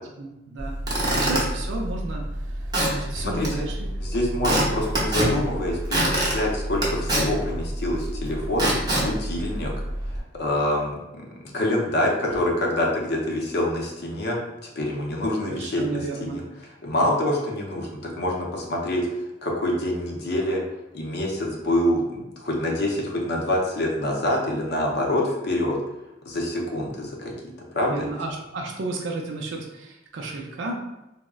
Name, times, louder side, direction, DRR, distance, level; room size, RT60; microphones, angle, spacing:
voice 1, 0.0-2.2 2.9-3.8 15.4-16.4 27.9-30.8, right 3 dB, 70° right, 0 dB, 0.4 m, -33 dB
Squeak / Wood, 0.6-10.2, right 1 dB, 20° right, 0.6 m, -26 dB
voice 2, 3.2-3.7 4.0-8.7 8.9-9.7 10.1-11.2 11.5-16.4 16.8-19.0 19.4-20.6 20.9-25.8 26.3-27.3 27.7-28.1, left 1 dB, 60° left, -1 dB, 0.6 m, -26 dB
3.5 x 2.0 x 2.3 m, 0.95 s
head